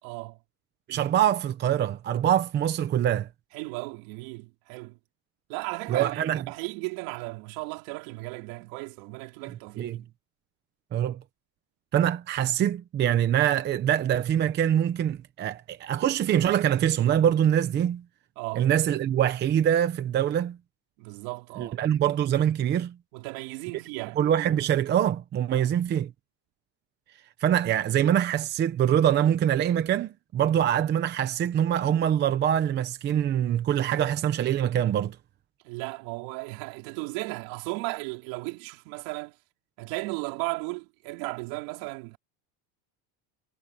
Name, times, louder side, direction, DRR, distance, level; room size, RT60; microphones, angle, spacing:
voice 1, 0.0-0.4 3.5-5.0 5.5-10.1 18.4-18.7 21.0-21.8 23.1-24.2 25.5-25.7 30.5-30.6 35.6-39.3 39.8-42.2, right 26 dB, 60° right, 4.1 m, -35 dB
voice 2, 0.9-3.3 5.9-6.4 9.8-10.0 10.9-11.2 11.9-18.0 18.5-20.6 21.6-22.9 24.2-26.1 27.4-35.2, right 10 dB, 20° right, 0.8 m, -24 dB
cardioid pair, 170°, 49 cm